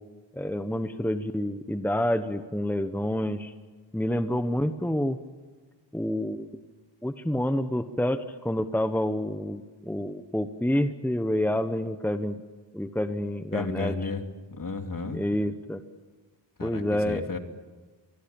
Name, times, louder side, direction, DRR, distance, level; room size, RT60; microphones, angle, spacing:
voice 1, 0.3-3.5 3.9-5.2 5.9-6.6 7.0-12.4 12.7-13.9 15.1-15.8 16.6-17.4, left 1 dB, 5° left, 9 dB, 1.1 m, -28 dB
voice 2, 13.5-14.2 14.5-15.2 16.6-17.4, left 3 dB, 45° left, 5 dB, 2.7 m, -33 dB
24.0 x 23.0 x 8.9 m, 1.4 s
wide cardioid pair, 85°, 45 cm